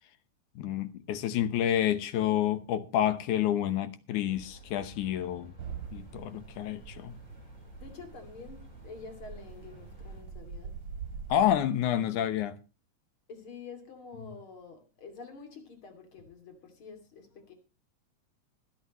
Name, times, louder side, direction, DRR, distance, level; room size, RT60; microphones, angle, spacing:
voice 1, 0.6-5.5 5.9-7.2 11.3-12.6, left 11 dB, 80° left, 2.5 m, -29 dB
sound 1, 4.3-10.2, right 1 dB, 15° left, 6.0 m, -53 dB
sound 2, 5.6-11.6, right 6 dB, 40° right, 2.7 m, -44 dB
voice 2, 7.8-10.7 13.3-17.5, left 4 dB, 45° left, 3.4 m, -48 dB
25.5 x 8.8 x 3.1 m
omnidirectional pair, 3.5 m